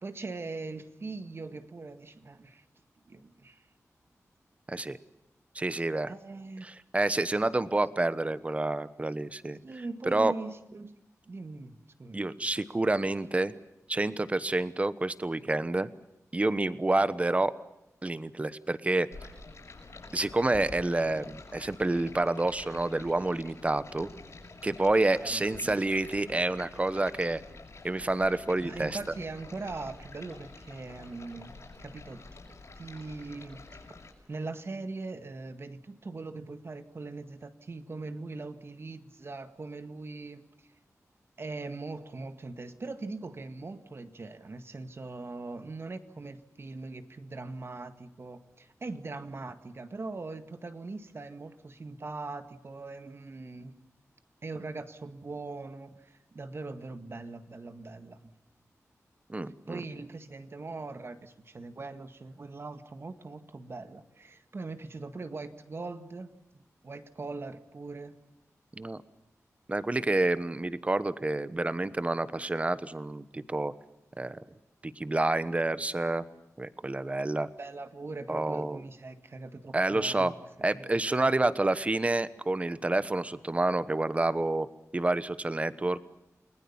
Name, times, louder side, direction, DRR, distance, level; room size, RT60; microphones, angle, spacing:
voice 1, 0.0-2.7 3.1-3.7 6.1-6.7 9.6-11.0 11.3-12.5 25.2-25.8 28.6-32.2 32.8-33.8 34.3-40.7 41.4-53.8 54.4-58.3 59.7-66.3 66.8-68.2 77.6-80.3 80.7-80.9, right 3 dB, 45° right, 9 dB, 1.8 m, -41 dB
voice 2, 5.5-6.1 6.6-9.6 10.0-10.3 12.1-13.5 13.9-15.9 16.3-17.5 18.0-19.1 20.1-24.1 24.6-27.4 27.8-29.0 59.3-59.8 68.8-69.0 69.7-73.7 74.2-74.4 74.8-76.2 76.6-77.5 78.3-78.8 79.7-80.3 80.6-84.7 84.9-86.0, right 2 dB, 25° right, 14 dB, 1.1 m, -28 dB
Stream, 19.1-34.1, left 3 dB, 60° left, 6.8 m, -48 dB
29.5 x 20.5 x 7.2 m, 0.88 s
wide cardioid pair, 125°, 6 cm